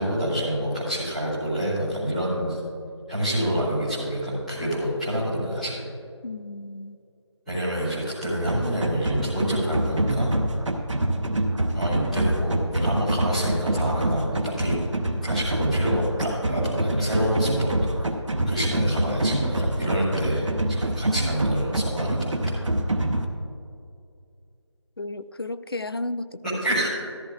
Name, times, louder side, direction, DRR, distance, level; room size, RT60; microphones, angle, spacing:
voice 1, 0.0-2.6 3.1-5.8 7.4-10.3 11.7-14.7 15.2-17.9 18.4-22.5 26.4-26.9, equal, ahead, -21 dB, 1.3 m, -27 dB
voice 2, 6.2-7.0 25.0-26.4, left 2 dB, 50° left, 13 dB, 0.4 m, -33 dB
sound 1, 8.5-23.2, right 1 dB, 85° right, 1.1 m, -26 dB
14.0 x 12.5 x 2.4 m, 2.4 s
figure-of-eight pair, 175°, 15 cm